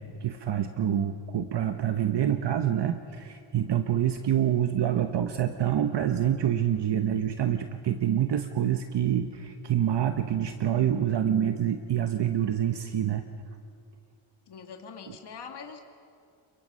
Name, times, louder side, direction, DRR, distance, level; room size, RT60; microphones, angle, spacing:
voice 1, 0.0-13.2, right 10 dB, 55° right, 7 dB, 1.0 m, -26 dB
voice 2, 14.5-15.8, left 5 dB, 50° left, 3 dB, 2.0 m, -43 dB
29.0 x 23.0 x 5.5 m, 2.4 s
cardioid pair, 115°, 50 cm